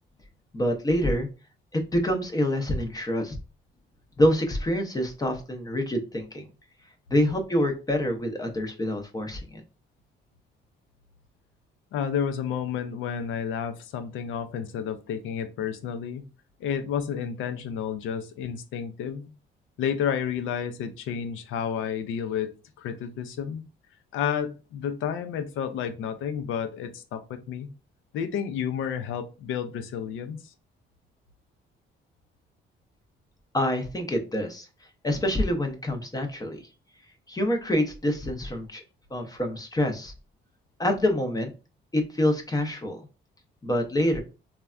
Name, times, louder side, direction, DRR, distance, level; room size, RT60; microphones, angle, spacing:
voice 1, 0.5-1.3 1.7-3.4 4.2-6.5 7.1-9.6 33.5-34.7 35.0-36.6 37.3-38.8 39.1-40.1 40.8-41.5 41.9-43.0 43.6-44.2, left 1 dB, 20° left, 4 dB, 0.6 m, -26 dB
voice 2, 11.9-16.2 16.6-19.3 19.8-23.6 24.1-27.7 28.1-30.5, left 8 dB, 80° left, 9 dB, 0.5 m, -31 dB
3.3 x 2.2 x 2.4 m, 0.32 s
cardioid pair, 90°, 20 cm